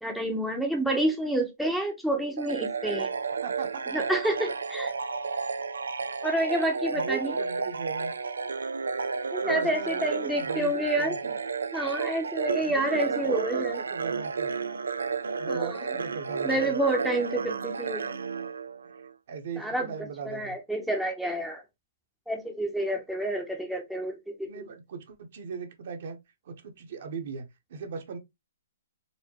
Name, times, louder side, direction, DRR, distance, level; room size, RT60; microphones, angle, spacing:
voice 1, 0.0-3.1 3.9-4.9 6.2-7.3 9.3-11.1 11.7-13.8 15.5-15.8 16.4-18.2 19.6-19.9 20.3-21.6 22.3-24.7, right 1 dB, ahead, 0.7 m, -29 dB
sound 1, 2.4-19.1, right 5 dB, 90° right, 0.3 m, -32 dB
voice 2, 3.4-3.8 6.9-8.1 9.4-11.4 12.6-14.5 15.4-16.7 18.9-19.0 19.3-20.5 24.4-26.2 26.4-28.2, right 6 dB, 55° right, 0.9 m, -38 dB
4.1 x 2.1 x 2.9 m
hypercardioid pair, 145°, 0 cm